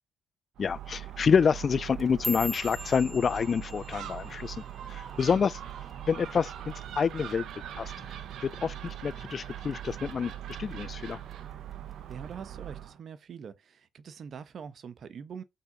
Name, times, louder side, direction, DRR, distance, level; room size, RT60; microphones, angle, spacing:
voice 1, 0.6-4.6 4.9-5.5 6.1-7.5 7.8-7.9 8.4-10.3 10.6-11.2, left 6 dB, 45° left, 0.3 m, -27 dB
Gull seagull, 0.6-13.0, right 10 dB, 75° right, 1.0 m, -41 dB
sound 1, 1.8-6.2 6.5-6.9 7.3-7.7 8.1-8.3 8.9-9.3 9.7-10.5 10.9-11.3 12.1-12.2, left 1 dB, 5° right, 0.7 m, -41 dB
voice 2, 12.1-15.4, right 7 dB, 55° right, 1.1 m, -43 dB
5.7 x 4.8 x 5.5 m
cardioid pair, 90°, 0 cm